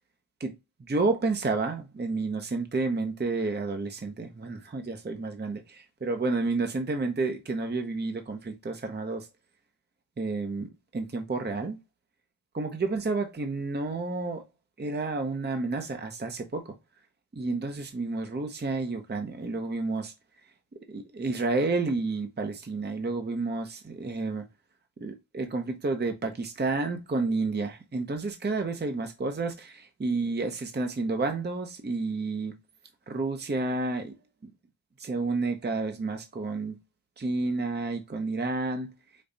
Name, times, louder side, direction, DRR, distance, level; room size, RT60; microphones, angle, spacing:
voice 1, 0.8-9.3 10.2-11.8 12.5-14.4 14.8-16.7 17.3-20.1 20.9-24.5 25.0-32.5 33.1-34.1 35.0-36.8 37.2-38.9, right 3 dB, 25° right, 0.7 m, -30 dB
5.3 x 2.3 x 3.9 m
cardioid pair, 60°, 41 cm